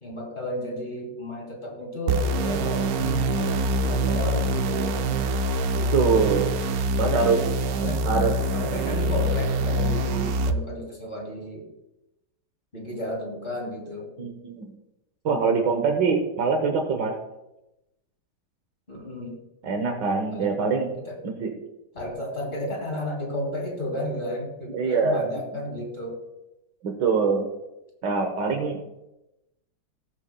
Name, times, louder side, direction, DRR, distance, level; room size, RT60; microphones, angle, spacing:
voice 1, 0.0-5.2 5.8-6.3 7.1-8.1 8.5-11.7 12.7-14.1 15.3-15.8 18.9-19.4 20.3-20.5 21.0-21.2 21.9-26.2 28.4-28.7, left 1 dB, 30° left, -1 dB, 2.6 m, -33 dB
sound 1, 2.1-10.5, right 1 dB, 70° right, 1.0 m, -25 dB
voice 2, 5.9-6.5 7.0-7.4 8.1-8.4 14.2-14.7 15.3-17.2 19.6-20.9 21.2-21.5 24.7-25.3 26.8-27.5 28.0-28.8, right 5 dB, 85° right, 3 dB, 1.8 m, -23 dB
19.5 x 7.1 x 2.2 m, 0.94 s
omnidirectional pair, 1.9 m